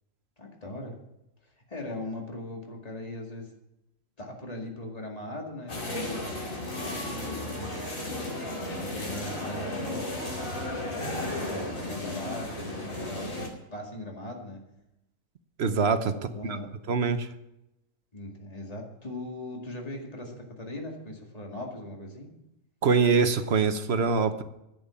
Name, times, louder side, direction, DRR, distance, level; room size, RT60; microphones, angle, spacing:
voice 1, 0.4-1.0 1.7-3.5 4.2-6.3 6.8-7.9 8.7-14.6 16.1-16.7 18.1-22.3, left 1 dB, 30° left, 0 dB, 2.2 m, -39 dB
sound 1, 5.7-13.5, left 1 dB, 85° left, 3.1 m, -34 dB
voice 2, 15.6-16.1 16.9-17.3 22.8-24.4, right 5 dB, 55° right, 10 dB, 1.0 m, -23 dB
10.5 x 9.0 x 7.1 m, 0.88 s
omnidirectional pair, 1.4 m